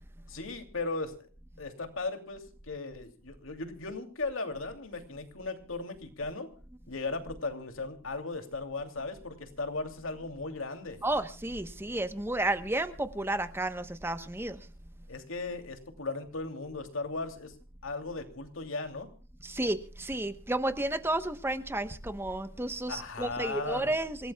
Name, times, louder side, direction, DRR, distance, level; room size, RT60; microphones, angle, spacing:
voice 1, 0.3-1.3 1.6-6.5 6.9-11.0 15.1-17.5 17.8-19.1 22.9-23.9, left 3 dB, 75° left, 6 dB, 2.8 m, -37 dB
voice 2, 11.0-14.6 19.4-24.3, right 1 dB, 10° right, 10 dB, 1.0 m, -32 dB
27.5 x 17.0 x 2.3 m, 0.38 s
head